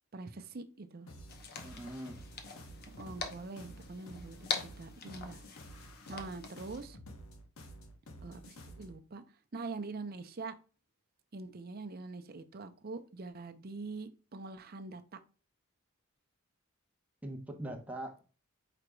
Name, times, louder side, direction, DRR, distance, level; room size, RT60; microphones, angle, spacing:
voice 1, 0.1-1.1 2.8-5.4 6.1-7.0 8.2-9.2 9.5-10.5 11.3-15.2, right 3 dB, 45° right, 0.6 m, -44 dB
sound 1, 1.1-9.0, equal, 75° left, 0.9 m, -51 dB
sound 2, 1.3-6.8, left 5 dB, 45° left, 0.9 m, -43 dB
voice 2, 1.6-2.2 17.2-18.2, right 1 dB, 5° right, 0.8 m, -42 dB
5.0 x 4.6 x 2.2 m
head